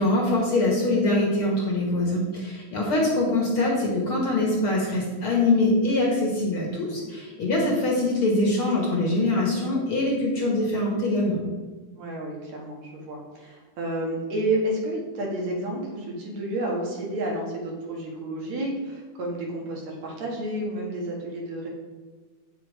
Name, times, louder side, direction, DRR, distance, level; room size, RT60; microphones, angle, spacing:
voice 1, 0.0-11.4, left 2 dB, 50° left, -2 dB, 2.2 m, -23 dB
voice 2, 11.9-21.7, right 1 dB, 60° right, -1 dB, 2.8 m, -30 dB
8.9 x 7.0 x 4.8 m, 1.3 s
omnidirectional pair, 3.6 m